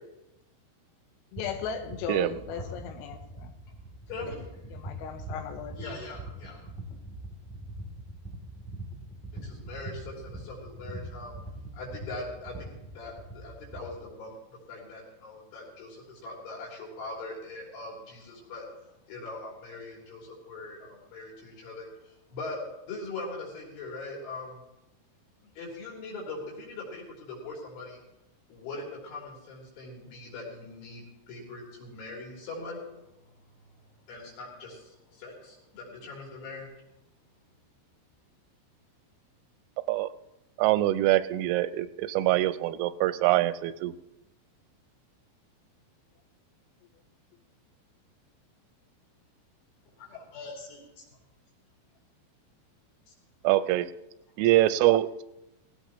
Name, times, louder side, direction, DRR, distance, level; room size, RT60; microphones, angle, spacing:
voice 1, 1.3-3.5 4.2-4.3 4.7-5.7, left 7 dB, 85° left, 3.6 m, -37 dB
sound 1, 1.3-14.0, right 1 dB, ahead, 0.9 m, -42 dB
voice 2, 4.1-4.5 9.4-11.4 11.7-14.4 14.7-18.7 19.1-22.6 22.8-24.6 25.4-28.0 28.5-32.8 34.1-36.7, left 2 dB, 65° left, 5.6 m, -41 dB
voice 3, 5.8-6.6 50.0-51.0 53.1-53.2, left 3 dB, 50° left, 5.3 m, -43 dB
voice 4, 40.6-43.9 53.4-53.9 54.4-55.0, right 15 dB, 90° right, 3.3 m, -24 dB
18.5 x 16.5 x 3.0 m
omnidirectional pair, 5.9 m